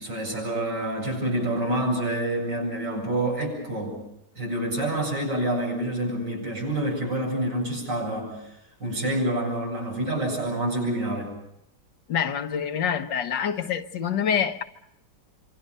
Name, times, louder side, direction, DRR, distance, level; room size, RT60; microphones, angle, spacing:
voice 1, 0.0-4.0 4.4-8.3 8.8-11.3, right 1 dB, 85° right, 8.8 m, -27 dB
voice 2, 12.1-14.6, left 8 dB, 90° left, 1.9 m, -26 dB
27.0 x 25.5 x 5.4 m
omnidirectional pair, 1.9 m